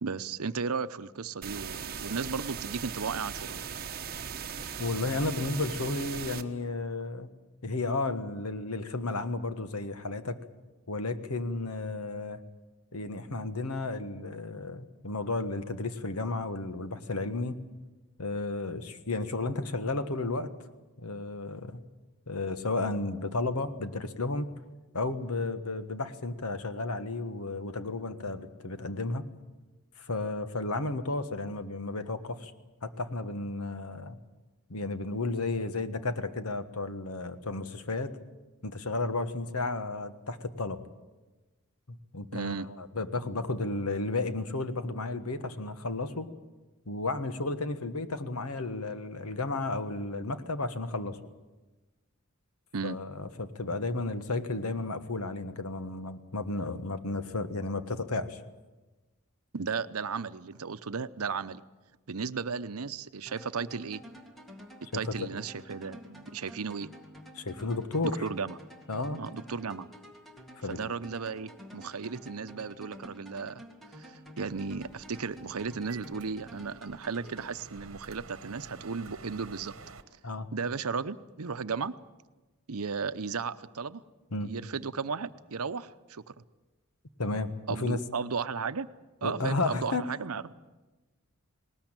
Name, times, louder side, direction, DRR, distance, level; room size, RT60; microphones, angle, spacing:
voice 1, 0.0-3.6 42.3-42.7 52.7-53.0 59.5-61.6 62.1-64.0 64.9-66.9 68.2-68.6 69.2-69.9 70.7-73.6 74.0-79.7 80.5-81.9 82.7-84.0 84.4-86.3 87.7-88.9 89.2-90.5, right 5 dB, 80° right, 13 dB, 0.8 m, -35 dB
sound 1, 1.4-6.4, right 7 dB, 45° right, 1.1 m, -38 dB
voice 2, 4.8-7.3 7.6-10.4 10.9-12.4 12.9-17.6 18.2-20.5 21.0-21.8 22.3-24.5 24.9-29.3 30.0-32.5 32.8-34.2 34.7-38.1 38.6-40.8 41.9-46.3 46.8-51.2 52.8-58.4 65.1-65.3 67.3-68.3 68.9-69.2 70.6-70.8 80.2-80.5 84.3-84.5 87.2-88.0 89.2-90.0, left 2 dB, 80° left, 11 dB, 1.4 m, -33 dB
sound 2, 63.3-78.3, equal, ahead, 2.1 m, -50 dB
sound 3, 74.5-80.0, right 4 dB, 60° right, 1.3 m, -50 dB
19.5 x 19.0 x 9.0 m, 1.2 s
head